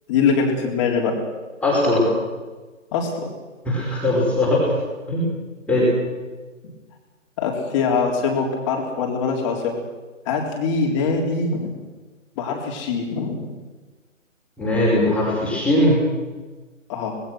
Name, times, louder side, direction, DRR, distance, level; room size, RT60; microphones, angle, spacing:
voice 1, 0.1-1.2 2.9-3.3 7.4-9.8 10.3-11.8 12.4-13.5 16.9-17.2, left 5 dB, 25° left, 0 dB, 3.9 m, -23 dB
voice 2, 1.6-2.1 3.7-4.7 5.1-5.3 5.7-5.9 14.6-16.0, left 1 dB, 5° left, -5 dB, 5.3 m, -19 dB
25.5 x 20.0 x 6.3 m, 1.3 s
figure-of-eight pair, 145°, 40 cm